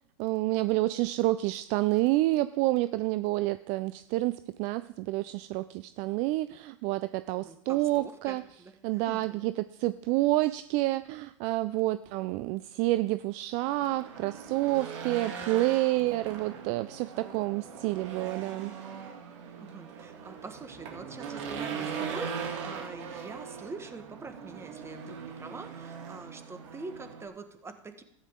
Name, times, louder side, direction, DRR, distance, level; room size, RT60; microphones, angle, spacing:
voice 1, 0.2-8.4 8.8-9.5 9.8-18.7, right 18 dB, 45° right, 14 dB, 0.4 m, -29 dB
voice 2, 7.4-9.5 19.6-28.0, right 4 dB, 15° right, 8 dB, 1.4 m, -44 dB
Race car auto racing / Engine, 13.6-27.3, right 6 dB, 65° right, 2.6 m, -40 dB
13.5 x 9.5 x 3.7 m, 0.77 s
hypercardioid pair, 100°, 16 cm